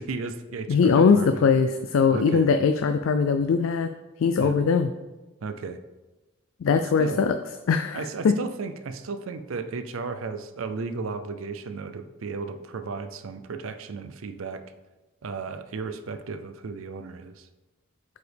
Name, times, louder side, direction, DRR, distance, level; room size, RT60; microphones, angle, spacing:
voice 1, 0.0-1.5 2.1-2.5 4.4-4.6 5.4-5.8 7.0-7.3 7.9-14.6 15.2-17.5, right 4 dB, 80° right, 10 dB, 0.5 m, -34 dB
voice 2, 0.7-3.9 4.2-4.9 6.6-7.4 7.7-8.3, left 5 dB, 75° left, 8 dB, 0.3 m, -21 dB
8.0 x 4.8 x 3.4 m, 1.1 s
head